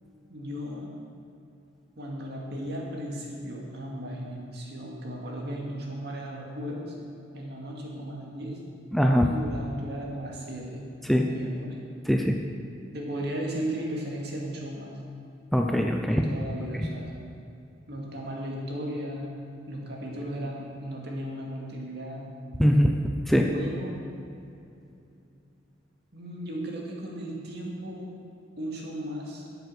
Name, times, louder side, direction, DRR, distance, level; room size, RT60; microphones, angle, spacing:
voice 1, 0.3-0.9 2.0-6.9 7.3-8.6 9.2-11.8 12.9-15.0 16.1-17.1 17.9-19.3 19.7-22.3 23.3-23.9 26.1-28.1 28.6-29.4, equal, 60° right, -2 dB, 2.4 m, -36 dB
voice 2, 8.9-9.3 11.1-11.2 12.1-12.4 15.5-16.2 22.6-22.9 23.3-23.5, equal, ahead, 2 dB, 0.6 m, -21 dB
12.5 x 8.1 x 6.4 m, 2.6 s
head